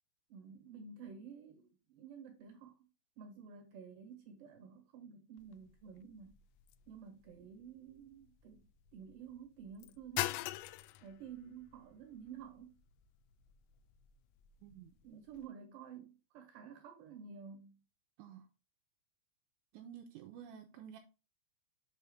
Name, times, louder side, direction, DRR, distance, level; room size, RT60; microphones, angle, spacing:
voice 1, 0.3-2.9 3.2-6.4 6.9-10.4 11.0-12.8 15.0-17.8, right 7 dB, 70° right, 2.8 m, -52 dB
sound 1, 5.4-15.5, left 16 dB, 85° left, 3.2 m, -46 dB
voice 2, 14.6-15.0 18.2-18.5 19.7-21.0, right 8 dB, 85° right, 2.6 m, -51 dB
7.7 x 5.6 x 3.6 m
omnidirectional pair, 5.9 m